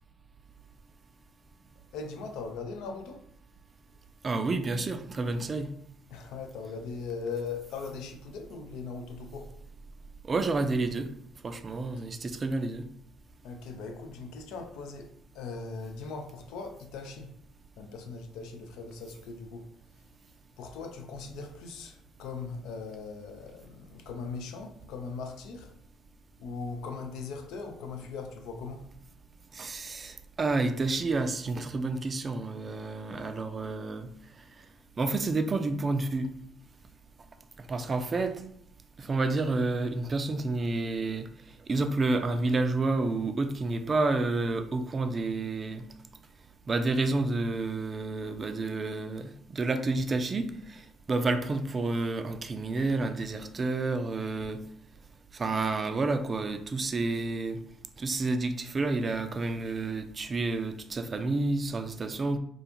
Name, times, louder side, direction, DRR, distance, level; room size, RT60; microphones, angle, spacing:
voice 1, 1.9-3.2 6.1-9.5 13.4-17.3 17.8-19.7 20.6-25.7 26.4-28.9, left 4 dB, 80° left, 0.4 m, -39 dB
voice 2, 4.2-5.7 10.3-11.1 11.4-12.9 29.5-34.1 35.0-36.3 37.7-38.4 39.0-41.3 41.7-45.8 46.7-50.8 51.1-54.6 55.3-57.6 58.0-62.4, right 3 dB, 35° right, 0.3 m, -29 dB
2.4 x 2.3 x 2.9 m
supercardioid pair, 75°, 0 cm